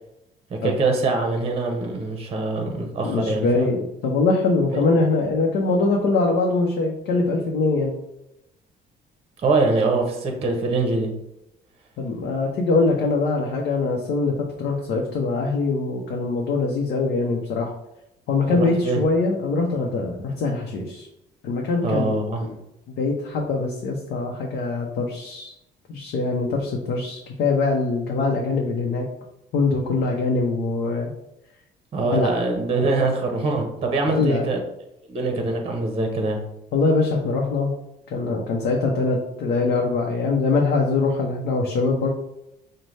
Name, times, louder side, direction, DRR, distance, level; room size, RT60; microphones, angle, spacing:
voice 1, 0.5-3.7 4.7-4.8 9.4-11.1 18.5-19.0 21.8-22.5 31.9-34.6 35.1-36.4, right 3 dB, 35° right, 3 dB, 0.8 m, -23 dB
voice 2, 3.0-7.9 12.0-17.7 18.3-21.1 21.4-22.6 22.9-25.5 25.9-29.1 29.5-31.1 32.1-32.3 34.1-34.5 36.7-37.7 38.1-42.1, left 3 dB, 70° left, 0 dB, 0.7 m, -23 dB
5.2 x 2.1 x 3.2 m, 0.85 s
cardioid pair, 110°, 17 cm